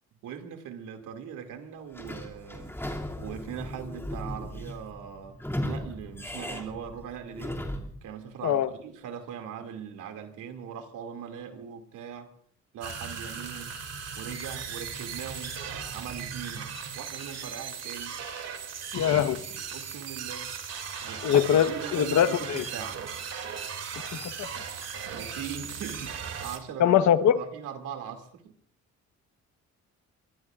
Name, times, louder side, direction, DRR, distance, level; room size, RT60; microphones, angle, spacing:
voice 1, 0.2-2.7 3.2-7.6 8.0-12.4 12.7-13.8 14.2-15.6 15.9-16.7 16.9-18.2 19.5-20.5 21.0-23.0 25.1-28.6, right 8 dB, 85° right, 2.5 m, -40 dB
Sliding door / Squeak, 1.9-8.0, left 1 dB, 10° left, 2.7 m, -37 dB
sound 1, 12.8-26.6, right 6 dB, 55° right, 2.7 m, -37 dB
voice 2, 18.9-19.4 21.2-22.6 24.2-24.5 26.8-27.4, left 9 dB, 70° left, 1.2 m, -22 dB
24.0 x 22.5 x 2.5 m
cardioid pair, 90°, 30 cm